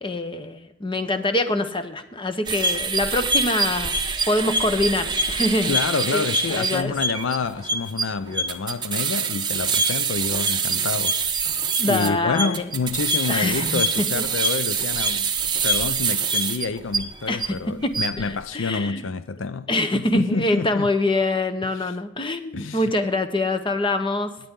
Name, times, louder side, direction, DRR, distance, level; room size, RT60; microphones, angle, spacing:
voice 1, 0.0-3.9 4.3-5.8 6.1-6.9 11.8-12.7 13.3-14.2 17.3-19.1 19.7-24.3, left 2 dB, 25° left, 0.9 m, -25 dB
sound 1, 2.5-17.5 17.8-18.2, right 4 dB, 20° right, 0.9 m, -25 dB
voice 2, 5.7-15.3 15.6-20.9 21.7-21.9 22.5-22.9, left 4 dB, 65° left, 0.5 m, -28 dB
17.5 x 10.0 x 3.7 m
head